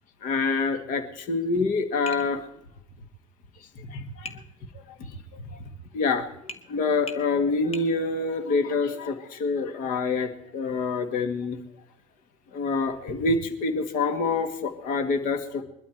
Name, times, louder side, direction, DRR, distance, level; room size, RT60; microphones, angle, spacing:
voice 1, 0.2-2.4 3.8-4.4 5.0-5.6 5.9-11.6 12.5-15.6, left 4 dB, 55° left, 9 dB, 2.0 m, -27 dB
Tap, 2.1-2.3 4.3-4.4 6.5-6.7 7.1-7.3 7.7-7.9, left 3 dB, 40° left, 1.7 m, -38 dB
22.0 x 12.5 x 4.6 m, 0.80 s
hypercardioid pair, 75°, 16 cm